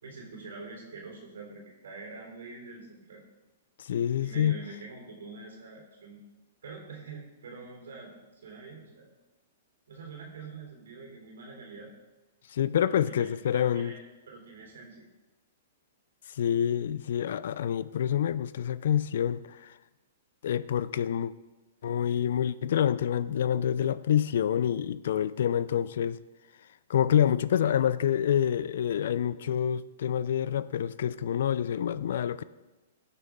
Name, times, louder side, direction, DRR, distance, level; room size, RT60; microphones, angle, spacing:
voice 1, 0.0-3.2 4.2-6.2 6.6-9.1 9.9-11.9 12.9-15.1, right 4 dB, 80° right, 3.4 m, -45 dB
voice 2, 3.8-4.6 12.5-13.9 16.4-19.7 20.4-21.3 21.8-26.2 26.9-32.4, left 9 dB, 70° left, 0.4 m, -27 dB
17.5 x 6.7 x 3.7 m
hypercardioid pair, 130°, 0 cm